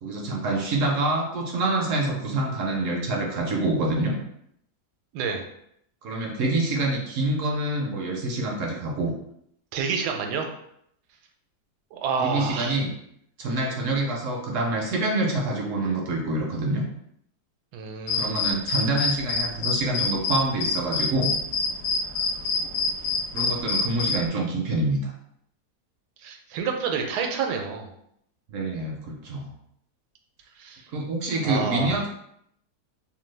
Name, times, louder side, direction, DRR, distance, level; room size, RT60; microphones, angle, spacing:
voice 1, 0.0-4.1 6.0-9.1 12.2-12.9 13.4-16.8 18.1-21.3 23.3-25.1 28.5-29.5 30.9-32.1, right 2 dB, 65° right, 0 dB, 0.8 m, -26 dB
voice 2, 9.7-10.5 11.9-12.7 17.7-18.5 26.2-27.9 30.6-30.8 31.4-32.0, right 5 dB, 85° right, 3 dB, 1.1 m, -28 dB
sound 1, 18.1-24.2, left 4 dB, 75° left, 0.6 m, -26 dB
2.8 x 2.2 x 3.2 m, 0.73 s
omnidirectional pair, 1.7 m